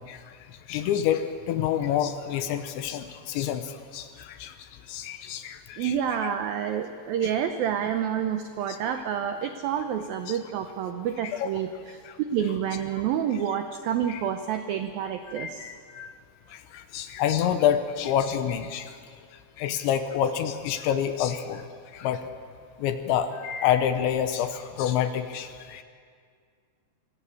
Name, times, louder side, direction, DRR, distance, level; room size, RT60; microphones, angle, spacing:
voice 1, 0.7-4.5 4.9-6.3 8.7-8.9 10.3-10.4 11.2-11.5 12.1-12.2 14.1-14.2 15.3-16.1 16.5-19.0 19.6-21.6 21.9-22.3 22.8-25.8, left 9 dB, 80° left, 9 dB, 3.2 m, -28 dB
voice 2, 5.8-11.7 12.3-15.7, right 9 dB, 90° right, 7 dB, 2.0 m, -28 dB
25.5 x 17.0 x 8.5 m, 2.1 s
omnidirectional pair, 5.4 m